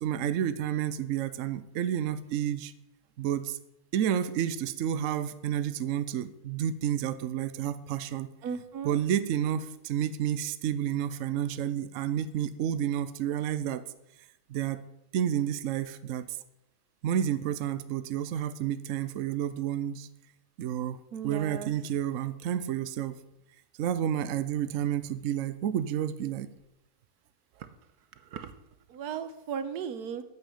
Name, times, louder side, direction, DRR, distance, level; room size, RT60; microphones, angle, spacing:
voice 1, 0.0-2.7 3.2-3.6 3.9-8.3 8.8-13.8 14.5-14.8 15.1-16.4 17.0-20.1 20.6-23.2 23.8-26.5, right 10 dB, 65° right, 13 dB, 0.9 m, -30 dB
voice 2, 8.4-9.0 21.1-21.7 28.3-28.5 28.9-30.2, right 7 dB, 85° right, 11 dB, 1.4 m, -36 dB
9.0 x 8.2 x 7.1 m, 0.88 s
omnidirectional pair, 1.6 m